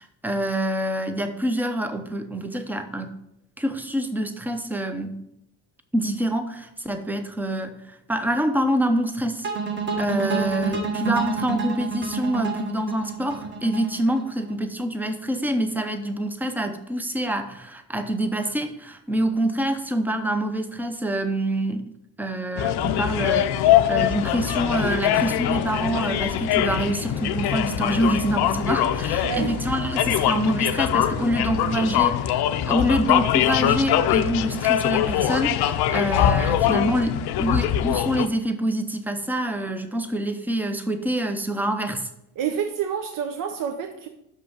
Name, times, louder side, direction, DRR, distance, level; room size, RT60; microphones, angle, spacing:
voice 1, 0.0-3.2 3.6-5.2 5.9-9.5 10.0-21.9 22.2-23.5 23.9-42.1, right 1 dB, 5° right, 0.6 m, -26 dB
sound 1, 9.4-14.5, right 5 dB, 30° right, 1.3 m, -28 dB
sound 2, 22.6-38.3, left 11 dB, 75° left, 0.7 m, -23 dB
sound 3, 22.8-32.1, right 1 dB, 80° right, 2.0 m, -38 dB
voice 2, 29.2-29.6 42.4-44.1, right 8 dB, 55° right, 0.8 m, -28 dB
6.3 x 5.5 x 6.9 m
cardioid pair, 155°, 39 cm